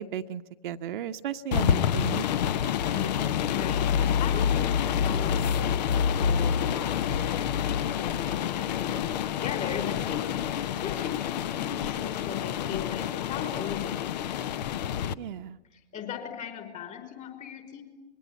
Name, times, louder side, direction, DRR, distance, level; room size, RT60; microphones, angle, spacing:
voice 1, 0.0-2.3 15.1-15.6, right 10 dB, 45° right, 6 dB, 1.0 m, -35 dB
sound 1, 1.5-15.1, left 8 dB, 35° left, 0.8 m, -27 dB
voice 2, 2.9-7.6 8.0-11.1 11.5-14.5 15.9-17.8, left 8 dB, 20° left, 7 dB, 5.2 m, -38 dB
26.0 x 22.0 x 9.0 m, 1.1 s
figure-of-eight pair, 120°, 36 cm